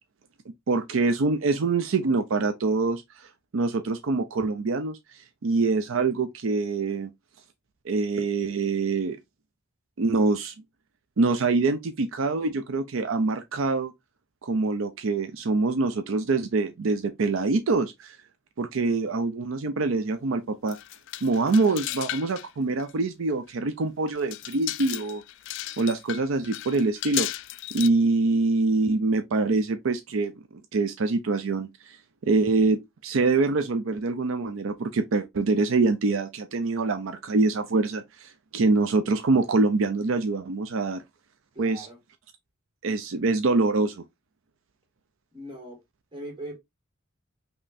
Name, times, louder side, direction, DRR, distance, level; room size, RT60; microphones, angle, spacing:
voice 1, 0.7-7.1 7.9-9.2 10.0-10.5 11.2-13.9 14.4-18.2 18.6-20.8 21.2-25.2 25.8-27.3 27.7-30.3 30.7-32.0 32.2-41.0 41.6-41.9 42.8-44.0, right 3 dB, 70° right, 0.5 m, -25 dB
sound 1, 20.7-22.5 22.8-22.9 23.5-23.6 24.1-27.9, left 15 dB, 60° left, 0.3 m, -35 dB
voice 2, 41.5-42.0 45.3-45.8 46.1-46.6, right 1 dB, 25° right, 2.0 m, -39 dB
5.3 x 3.0 x 2.6 m
head